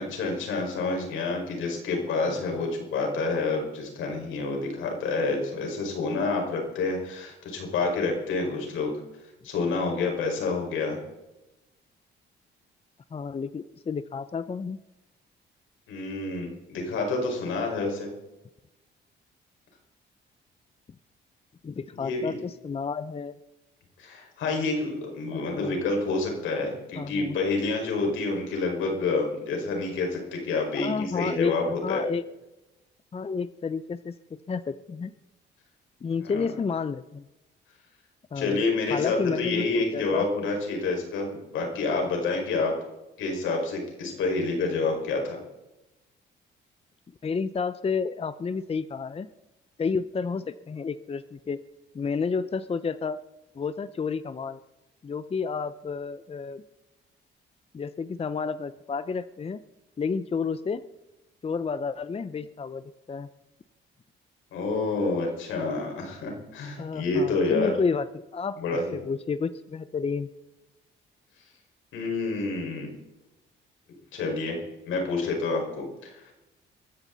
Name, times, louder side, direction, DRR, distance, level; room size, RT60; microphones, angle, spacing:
voice 1, 0.0-8.9 9.4-11.0 15.9-18.1 21.9-22.3 24.0-32.0 36.2-36.4 38.4-42.7 43.2-45.4 64.5-67.7 68.6-68.9 71.9-72.9 74.1-74.6 74.9-76.3, left 3 dB, 80° left, 2 dB, 5.3 m, -28 dB
voice 2, 13.1-14.8 21.6-23.4 25.3-25.8 26.9-27.4 30.7-32.2 33.1-34.2 34.5-35.1 36.0-37.3 38.3-38.6 38.9-40.3 47.2-49.3 49.8-51.6 51.9-53.2 53.5-54.6 55.0-56.6 57.7-59.6 60.0-60.8 61.4-63.3 66.8-70.3, left 5 dB, 30° left, 13 dB, 0.7 m, -31 dB
22.5 x 14.0 x 4.1 m, 0.99 s
cardioid pair, 90°, 20 cm